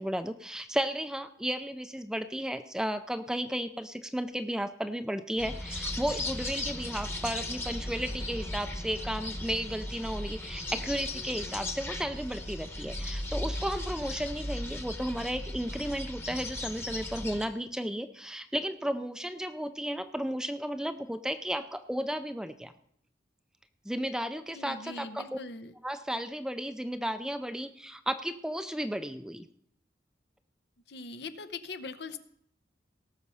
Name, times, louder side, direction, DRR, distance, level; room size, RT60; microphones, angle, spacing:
voice 1, 0.0-22.7 23.8-25.4 25.8-29.5, equal, 5° right, 10 dB, 0.4 m, -34 dB
sound 1, 5.4-17.5, left 1 dB, 15° left, 1.0 m, -37 dB
voice 2, 24.5-25.7 30.9-32.2, left 3 dB, 70° left, 11 dB, 0.8 m, -41 dB
18.0 x 6.5 x 5.6 m, 0.70 s
head